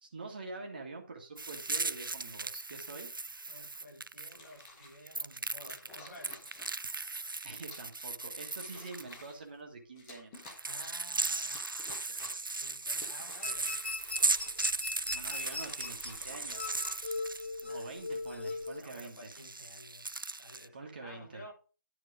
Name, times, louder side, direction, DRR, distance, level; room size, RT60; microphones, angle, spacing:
voice 1, 0.0-3.1 7.4-10.3 15.0-16.7 17.6-19.3 20.7-21.4, right 3 dB, 25° right, 1.4 m, -46 dB
sound 1, 1.4-4.7 5.1-9.1 10.3-18.2 18.5-20.7, right 3 dB, 90° right, 0.4 m, -37 dB
voice 2, 3.5-6.5 10.6-11.7 12.5-13.8 17.7-18.0 18.3-20.1 20.4-21.5, left 1 dB, 50° left, 3.7 m, -53 dB
sound 2, 4.2-5.0 5.6-6.9 7.6-8.0 8.3-9.4 9.9-11.1 11.4-12.5 12.9-14.8 15.2-17.6 18.3-18.7, left 2 dB, 10° left, 0.8 m, -53 dB
sound 3, 13.4-18.8, left 3 dB, 30° left, 0.5 m, -40 dB
10.5 x 4.4 x 4.9 m
figure-of-eight pair, 160°, 11 cm